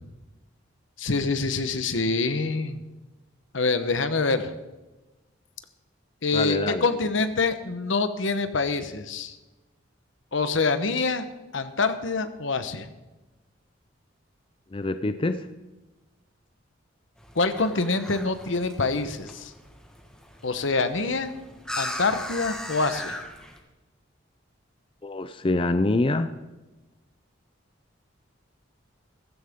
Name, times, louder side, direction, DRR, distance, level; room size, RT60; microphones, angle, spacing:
voice 1, 1.0-2.8 3.5-4.5 6.2-9.4 10.3-11.2 11.5-12.9 17.3-19.5 20.4-21.3 21.8-23.2, left 3 dB, 75° left, 10 dB, 1.1 m, -25 dB
voice 2, 6.3-6.9 14.7-15.5 25.0-26.3, left 2 dB, 25° left, 11 dB, 0.4 m, -25 dB
sound 1, 17.2-23.6, left 1 dB, 5° left, 1.5 m, -38 dB
15.5 x 15.5 x 3.7 m, 1.1 s
head